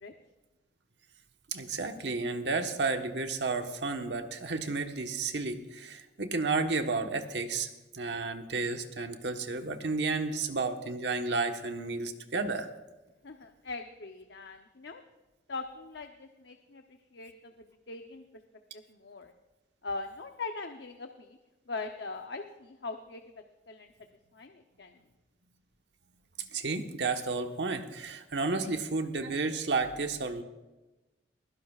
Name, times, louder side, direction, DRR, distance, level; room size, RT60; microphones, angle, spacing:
voice 1, 1.5-7.7 7.9-12.7 26.4-30.4, right 3 dB, 75° right, 5 dB, 1.3 m, -32 dB
voice 2, 13.2-15.0 15.5-16.8 17.1-17.5 17.9-18.2 18.7-19.3 19.8-21.4 21.7-23.2 23.7-23.9 24.3-24.9, left 3 dB, 75° left, 5 dB, 0.8 m, -41 dB
21.0 x 16.0 x 2.4 m, 1.1 s
head